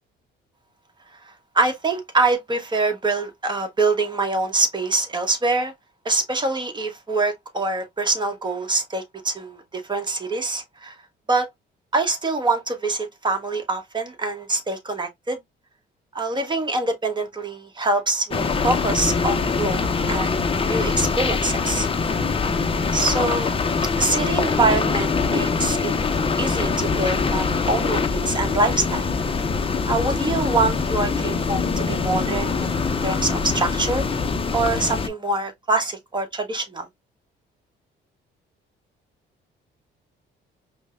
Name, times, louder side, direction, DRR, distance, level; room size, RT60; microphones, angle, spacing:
voice 1, 1.5-5.7 6.0-10.9 11.3-11.5 11.9-15.4 16.1-20.4 20.6-21.9 22.9-23.5 23.9-25.9 26.4-29.1 29.9-34.1 34.5-36.9, right 3 dB, 20° right, 1.2 m, -24 dB
sound 1, 18.3-35.1, left 4 dB, 30° left, 0.6 m, -23 dB
5.1 x 2.2 x 2.5 m
cardioid pair, 90°, 20 cm